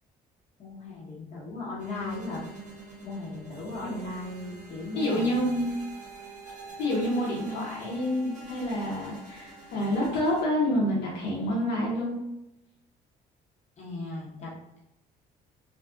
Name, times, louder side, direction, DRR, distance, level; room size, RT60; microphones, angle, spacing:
voice 1, 0.6-2.4 3.0-5.4 13.8-14.8, left 3 dB, 40° left, -5 dB, 1.0 m, -37 dB
sound 1, 1.8-10.4, right 3 dB, 45° right, 1.2 m, -45 dB
voice 2, 4.9-5.8 6.8-12.2, left 1 dB, 80° left, -3 dB, 0.7 m, -28 dB
2.6 x 2.4 x 2.4 m, 0.87 s
cardioid pair, 110°, 17 cm